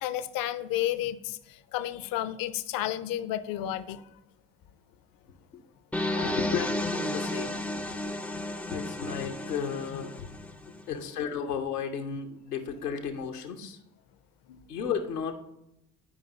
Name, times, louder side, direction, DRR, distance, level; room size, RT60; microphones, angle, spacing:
voice 1, 0.0-4.0 8.6-8.7 9.9-10.0 10.5-10.6 14.5-14.6, left 13 dB, 50° left, 14 dB, 0.6 m, -32 dB
sound 1, 5.9-10.8, left 1 dB, 5° left, 0.5 m, -33 dB
voice 2, 6.1-8.1 8.7-10.3 10.9-13.8 14.7-15.3, left 7 dB, 80° left, 4 dB, 0.9 m, -34 dB
9.9 x 5.2 x 3.9 m, 0.84 s
figure-of-eight pair, 50°, 46 cm